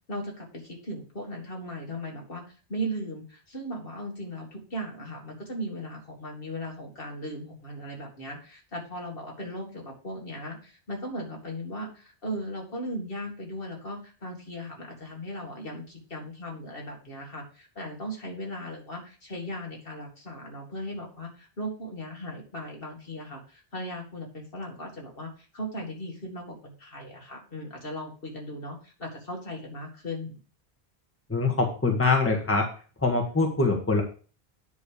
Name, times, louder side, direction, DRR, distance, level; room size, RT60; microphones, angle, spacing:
voice 1, 0.1-2.4 2.7-30.4, equal, 60° left, -1 dB, 2.4 m, -37 dB
voice 2, 31.3-32.7 33.0-34.0, left 3 dB, 15° left, 1 dB, 1.3 m, -24 dB
9.8 x 3.3 x 6.6 m, 0.38 s
omnidirectional pair, 1.0 m